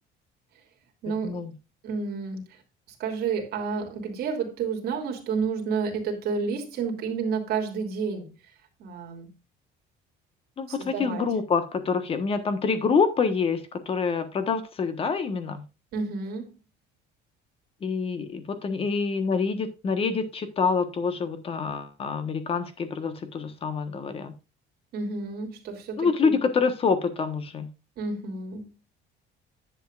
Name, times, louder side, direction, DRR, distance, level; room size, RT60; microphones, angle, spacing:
voice 1, 1.0-1.4 1.8-2.5 3.0-8.3 8.8-9.3 10.7-11.2 15.9-16.5 24.9-26.4 28.0-28.7, right 5 dB, 55° right, 2.9 m, -30 dB
voice 2, 10.6-15.6 17.8-24.3 26.0-27.7, left 5 dB, 30° left, 1.3 m, -26 dB
10.5 x 8.4 x 2.5 m
cardioid pair, 165°, 19 cm